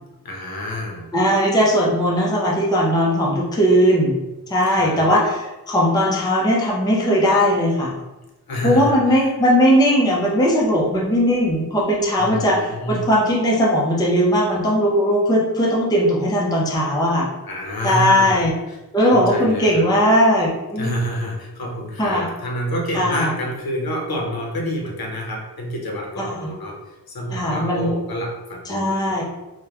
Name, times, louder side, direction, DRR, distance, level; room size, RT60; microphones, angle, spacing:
voice 1, 0.2-1.1 4.7-5.1 8.5-9.3 12.2-13.1 17.4-18.8 19.1-19.9 20.7-29.2, equal, 65° left, 0 dB, 0.6 m, -28 dB
voice 2, 1.1-7.9 8.6-17.3 17.8-18.5 18.9-20.9 22.0-22.2 22.9-23.3 26.3-26.5 27.3-27.9 28.7-29.2, equal, 10° left, -4 dB, 0.4 m, -18 dB
2.9 x 2.1 x 2.3 m, 1.0 s
wide cardioid pair, 110°, 39 cm